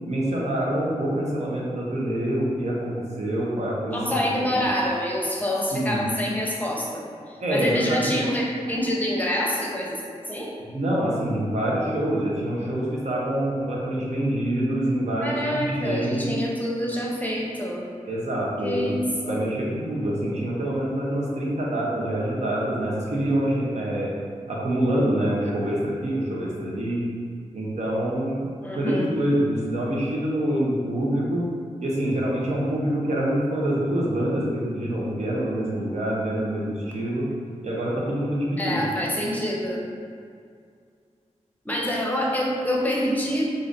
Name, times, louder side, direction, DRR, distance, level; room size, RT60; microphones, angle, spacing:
voice 1, 0.1-4.0 4.5-4.6 5.7-6.1 7.4-8.2 10.6-16.4 18.1-19.0 19.3-24.1 24.5-27.1 27.5-31.4 31.8-37.3 37.6-38.9, right 1 dB, 65° right, -5 dB, 0.9 m, -26 dB
voice 2, 3.9-10.0 10.3-10.5 15.2-17.8 18.6-19.4 28.6-29.0 38.6-39.8 41.6-43.4, equal, 15° left, -4 dB, 0.8 m, -26 dB
4.8 x 2.6 x 2.6 m, 2.2 s
wide cardioid pair, 70°, 13 cm